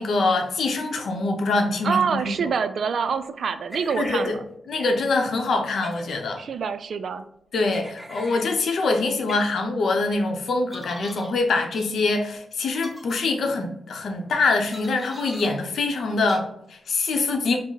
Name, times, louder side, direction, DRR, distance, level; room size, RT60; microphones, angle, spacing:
voice 1, 0.0-2.5 4.0-4.4 4.7-6.4 7.5-17.6, left 3 dB, 75° left, 0.7 m, -24 dB
voice 2, 1.8-4.3 6.4-7.2, right 6 dB, 70° right, 0.3 m, -26 dB
sound 1, 3.7-4.3 4.7-4.9 5.7-6.2 7.7-8.5 9.3-9.4 10.7-11.3 11.7-11.9 12.7-13.2 14.7-15.5 16.3-16.4, equal, 5° right, 1.6 m, -40 dB
5.0 x 2.0 x 3.9 m
cardioid pair, 75°, 0 cm